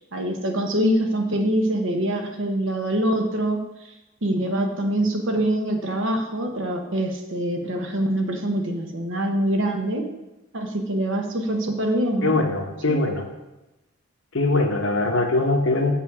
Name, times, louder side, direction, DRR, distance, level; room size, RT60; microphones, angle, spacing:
voice 1, 0.1-3.9 4.2-10.1 10.5-12.4 12.9-13.0, right 1 dB, 60° right, 4 dB, 1.1 m, -24 dB
voice 2, 12.2-13.2 14.3-15.9, left 2 dB, 60° left, 1 dB, 1.0 m, -22 dB
7.4 x 6.8 x 4.9 m, 0.99 s
head